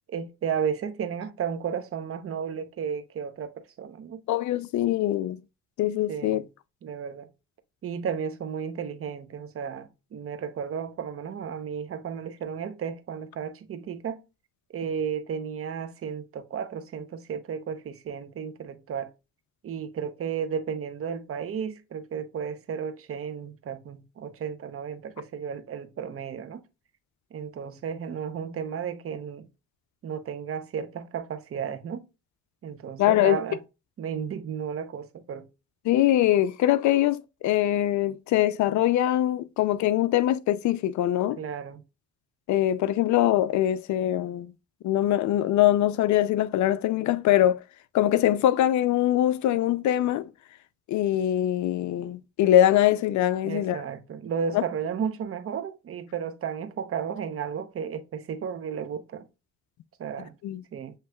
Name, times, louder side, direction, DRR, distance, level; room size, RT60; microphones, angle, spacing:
voice 1, 0.1-4.2 6.1-6.4 6.8-7.3 7.8-14.2 14.7-19.1 19.6-26.6 27.3-29.5 30.0-32.0 32.6-33.6 34.0-35.5 41.4-41.8 53.4-59.3 60.0-60.3 60.7-60.9, right 7 dB, 50° right, 0.8 m, -33 dB
voice 2, 4.3-5.4 5.8-6.4 33.0-33.4 35.8-41.4 42.5-44.5 44.8-47.6 47.9-50.2 50.9-53.8 54.5-54.6 60.4-60.6, left 13 dB, 70° left, 0.5 m, -23 dB
6.6 x 3.1 x 2.2 m
cardioid pair, 90°, 30 cm